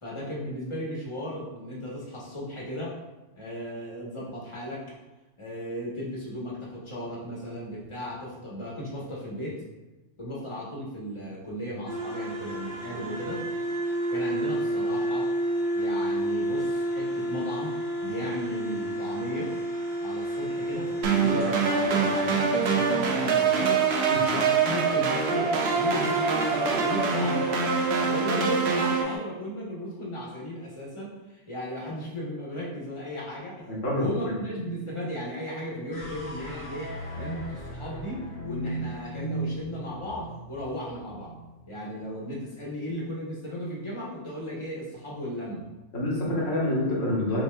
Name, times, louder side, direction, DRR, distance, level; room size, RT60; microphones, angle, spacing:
voice 1, 0.0-3.0 3.3-4.9 5.4-9.6 10.2-13.5 14.1-15.3 15.7-17.7 18.0-19.5 20.0-23.8 24.3-27.7 28.1-33.7 33.9-41.3 41.7-45.7, equal, 25° left, -5 dB, 1.0 m, -35 dB
sound 1, 11.9-22.7 25.6-29.2, right 1 dB, 85° right, 1.5 m, -31 dB
sound 2, 21.0-29.0, right 5 dB, 65° right, 0.8 m, -24 dB
voice 2, 33.7-34.4 45.9-47.4, left 1 dB, 80° left, -6 dB, 1.6 m, -27 dB
sound 3, 35.9-42.3, right 1 dB, 50° left, 1.0 m, -37 dB
6.0 x 2.8 x 2.2 m, 1.1 s
omnidirectional pair, 1.3 m